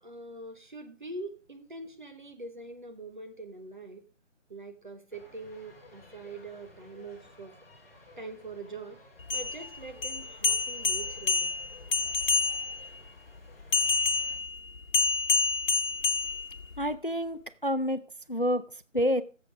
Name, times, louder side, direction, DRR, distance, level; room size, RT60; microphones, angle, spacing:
voice 1, 0.0-4.1 4.5-7.6 8.2-9.0 9.3-11.5, right 2 dB, 40° right, 1.2 m, -43 dB
sound 1, 5.1-14.4, left 2 dB, 10° left, 1.4 m, -55 dB
sound 2, 9.2-12.9 13.7-16.9, left 4 dB, 90° left, 1.3 m, -28 dB
voice 2, 16.8-18.0 18.3-19.2, equal, 45° left, 0.4 m, -28 dB
10.5 x 7.6 x 5.0 m
figure-of-eight pair, 180°, 39 cm